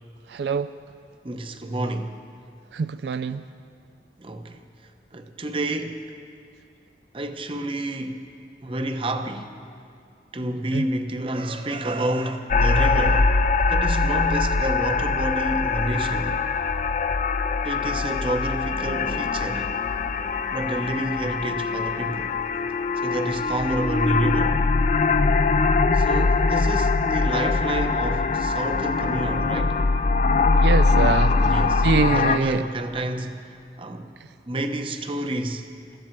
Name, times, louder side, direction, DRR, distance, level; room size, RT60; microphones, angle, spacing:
voice 1, 0.3-0.7 2.7-3.4 10.7-10.9 30.6-31.5 31.8-32.6, right 4 dB, 75° right, 0.4 m, -24 dB
voice 2, 1.2-2.2 4.2-4.6 5.1-6.1 7.1-8.3 8.6-9.5 10.3-13.4 13.7-16.4 17.6-19.7 20.5-22.4 23.0-24.7 25.9-29.8 31.4-34.1 34.5-35.7, right 1 dB, 30° right, 0.8 m, -29 dB
sound 1, 12.5-32.4, left 4 dB, 40° left, 0.4 m, -22 dB
22.5 x 14.0 x 4.5 m
head